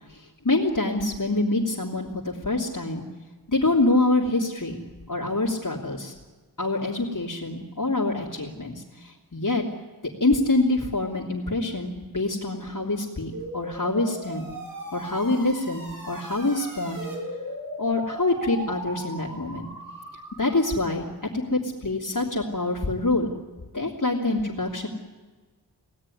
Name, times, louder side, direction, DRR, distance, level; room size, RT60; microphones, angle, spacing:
voice 1, 0.1-3.0 3.5-4.8 5.1-6.1 6.6-9.6 10.2-14.5 14.9-17.0 17.8-19.7 20.4-21.0 21.5-23.3 23.7-24.9, left 2 dB, 55° left, -3 dB, 3.0 m, -25 dB
sound 1, 13.3-20.8, right 1 dB, 60° right, 6.2 m, -38 dB
24.5 x 17.0 x 10.0 m, 1.3 s
wide cardioid pair, 55°, 37 cm